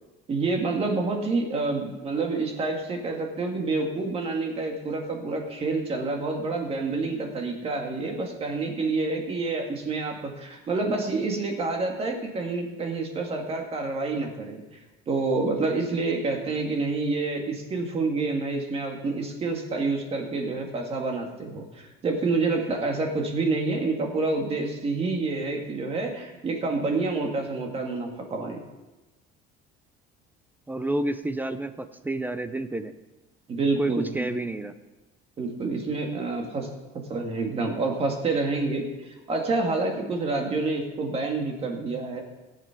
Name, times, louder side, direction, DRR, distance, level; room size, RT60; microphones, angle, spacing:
voice 1, 0.3-14.6 15.1-28.6 33.5-34.3 35.4-36.7 37.1-42.2, right 3 dB, 30° right, 2 dB, 1.8 m, -28 dB
voice 2, 30.7-32.9 33.8-34.7, right 1 dB, 10° right, 10 dB, 0.4 m, -29 dB
17.0 x 7.4 x 5.8 m, 1.1 s
cardioid pair, 170°, 21 cm